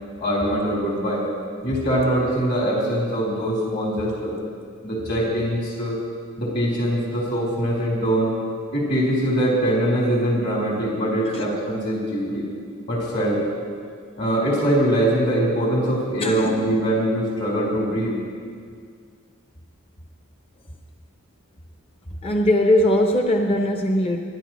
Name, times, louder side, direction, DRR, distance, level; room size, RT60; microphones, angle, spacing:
voice 1, 0.2-1.3 1.6-4.3 4.8-6.0 6.4-8.3 8.7-12.5 12.9-13.4 14.2-18.2, right 1 dB, 50° left, -5 dB, 4.2 m, -22 dB
voice 2, 16.2-16.6 22.2-24.2, left 1 dB, 25° left, 2 dB, 0.8 m, -20 dB
26.5 x 11.0 x 3.1 m, 2.1 s
head